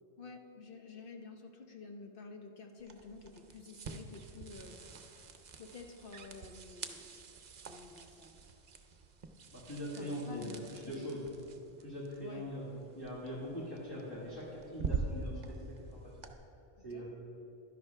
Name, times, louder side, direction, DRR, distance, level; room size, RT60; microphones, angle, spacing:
voice 1, 0.2-4.8 5.1-7.1 7.7-8.6 10.0-11.0 12.2-12.4 16.8-17.1, left 4 dB, 60° left, 4 dB, 1.0 m, -50 dB
sound 1, 2.8-16.3, right 4 dB, 50° right, 0.7 m, -45 dB
voice 2, 9.5-11.2 11.8-12.7 12.9-15.6 15.9-16.1 16.8-17.1, equal, 20° left, -8 dB, 1.5 m, -42 dB
11.0 x 10.5 x 3.3 m, 3.0 s
omnidirectional pair, 1.1 m